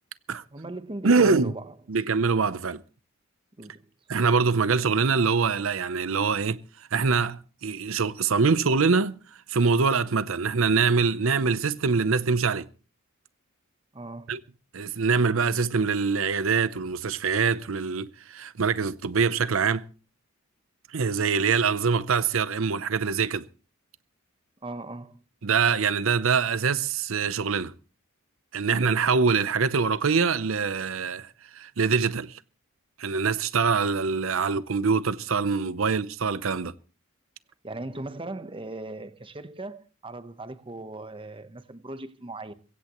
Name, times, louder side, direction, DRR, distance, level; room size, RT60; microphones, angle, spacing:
voice 1, 0.5-1.7 3.6-3.9 13.9-14.4 24.6-25.2 37.6-42.5, right 2 dB, 25° right, 1.0 m, -38 dB
voice 2, 1.0-1.5 1.9-2.8 4.1-6.6 6.9-9.1 9.5-12.7 14.3-14.4 14.7-19.8 20.9-23.4 25.4-27.7 28.5-32.4 33.0-36.7, right 5 dB, 70° right, 0.7 m, -24 dB
22.0 x 16.5 x 3.0 m
head